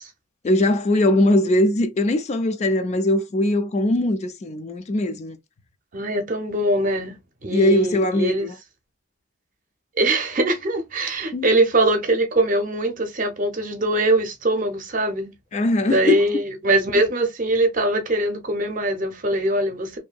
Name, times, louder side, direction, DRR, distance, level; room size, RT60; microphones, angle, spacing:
voice 1, 0.4-5.4 7.5-8.5 11.3-11.5 15.5-16.2, left 1 dB, 35° left, 0.3 m, -20 dB
voice 2, 5.9-8.5 10.0-15.3 15.9-20.0, right 1 dB, 40° right, 0.6 m, -22 dB
2.6 x 2.6 x 2.2 m
head